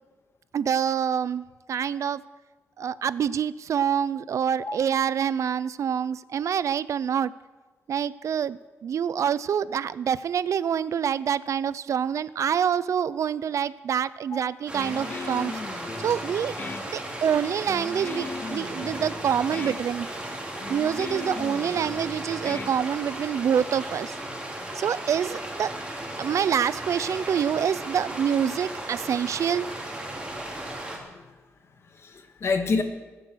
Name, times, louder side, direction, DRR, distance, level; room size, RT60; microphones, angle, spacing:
voice 1, 0.5-2.2 2.8-7.3 7.9-15.5 16.0-16.5 16.8-20.1 20.7-24.1 24.7-25.7 26.2-29.7, right 8 dB, 70° right, 18 dB, 0.5 m, -26 dB
Guitar, 14.7-23.4, left 4 dB, 35° left, 0.6 m, -38 dB
sound 1, 14.7-31.0, right 1 dB, 20° right, 3.5 m, -36 dB
voice 2, 30.9-31.3 31.8-32.8, left 4 dB, 55° left, 6 dB, 1.7 m, -29 dB
21.5 x 8.2 x 6.3 m, 1.3 s
cardioid pair, 110°, 5 cm